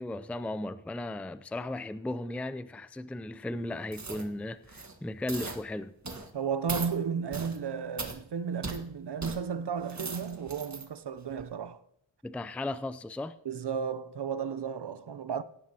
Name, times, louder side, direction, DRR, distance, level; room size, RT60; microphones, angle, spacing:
voice 1, 0.0-5.9 12.2-13.3, left 1 dB, 5° left, 0.5 m, -36 dB
sound 1, 3.9-4.3 4.6-4.9 5.3-5.6 6.0-6.3 6.7-6.9 7.3-7.6 8.0-8.2 8.6-8.8 9.2-9.4 9.8-10.8 11.3-11.4, right 3 dB, 35° right, 1.7 m, -38 dB
voice 2, 6.3-11.8 13.4-15.4, right 6 dB, 55° right, 0.7 m, -33 dB
17.5 x 10.5 x 2.9 m
cardioid pair, 55°, 47 cm